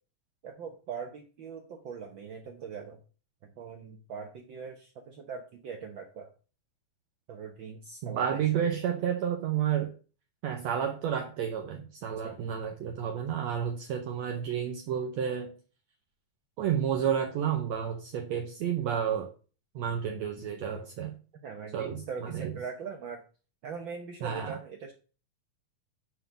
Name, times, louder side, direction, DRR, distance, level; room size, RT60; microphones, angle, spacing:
voice 1, 0.4-3.0 3.4-6.3 7.3-8.6 12.2-12.4 21.4-23.2 23.6-24.9, right 6 dB, 85° right, 3 dB, 1.0 m, -41 dB
voice 2, 8.0-9.9 10.4-15.5 16.6-19.3 19.8-21.2 21.7-22.5 24.2-24.6, right 8 dB, 70° right, 3 dB, 1.9 m, -31 dB
9.3 x 3.8 x 6.9 m, 0.37 s
omnidirectional pair, 3.5 m